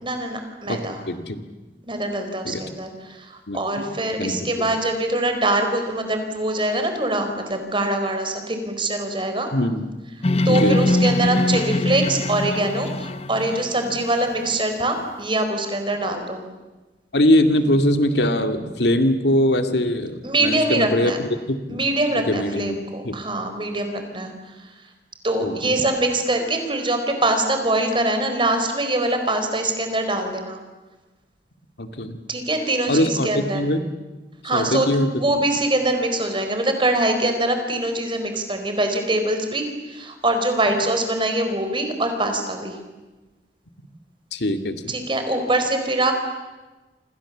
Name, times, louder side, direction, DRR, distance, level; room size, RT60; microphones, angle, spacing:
voice 1, 0.0-1.0 1.9-2.9 3.3-9.5 10.4-16.4 20.2-21.2 21.7-24.3 25.2-30.6 32.3-33.6 34.4-34.9 35.1-42.7 44.9-46.1, right 2 dB, 30° right, 6 dB, 4.4 m, -23 dB
voice 2, 1.1-1.4 2.4-2.6 3.5-3.9 4.2-4.8 9.5-9.9 10.4-10.8 17.1-21.8 22.1-22.8 23.0-23.3 25.4-25.7 31.8-32.2 32.9-33.9 34.5-35.2 44.3-45.0, left 1 dB, 75° left, 7 dB, 2.2 m, -22 dB
sound 1, 10.2-14.0, left 2 dB, 35° left, 0.8 m, -22 dB
28.5 x 27.0 x 7.4 m, 1.2 s
head